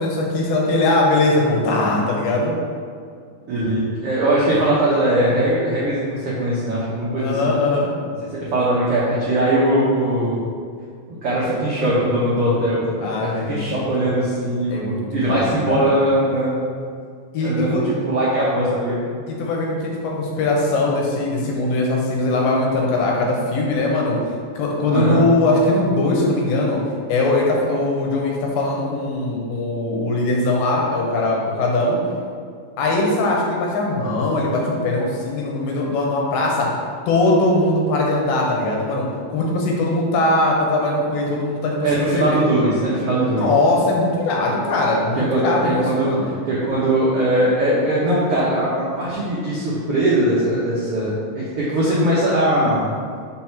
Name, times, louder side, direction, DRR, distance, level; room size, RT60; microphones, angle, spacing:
voice 1, 0.0-2.6 7.2-7.9 13.0-13.8 14.7-15.9 17.3-17.8 19.3-24.2 24.6-26.8 27.1-32.0 32.8-36.7 37.1-42.4 43.2-46.4, left 2 dB, 70° left, -2 dB, 2.6 m, -20 dB
voice 2, 3.5-7.5 8.3-10.4 11.2-16.6 17.4-19.0 24.9-25.2 41.8-43.4 45.1-52.8, right 1 dB, 85° right, -8 dB, 1.3 m, -20 dB
6.0 x 4.2 x 5.9 m, 2.2 s
omnidirectional pair, 4.5 m